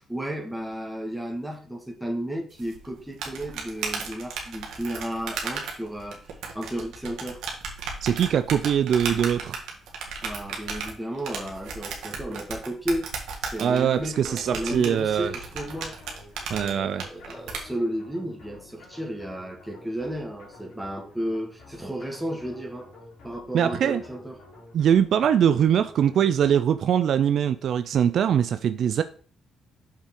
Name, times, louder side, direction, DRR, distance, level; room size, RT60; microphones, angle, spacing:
voice 1, 0.0-6.2 6.5-7.4 10.2-13.1 13.5-16.0 16.5-22.9 23.2-24.4, right 1 dB, 5° right, 1.8 m, -33 dB
sound 1, 2.6-17.6, right 5 dB, 85° right, 1.7 m, -35 dB
voice 2, 8.0-9.6 13.6-15.3 16.5-17.0 23.5-24.0 24.7-29.0, right 9 dB, 65° right, 0.4 m, -22 dB
sound 2, 13.7-26.9, left 2 dB, 90° left, 3.9 m, -50 dB
6.6 x 5.7 x 3.8 m
cardioid pair, 90°, 0 cm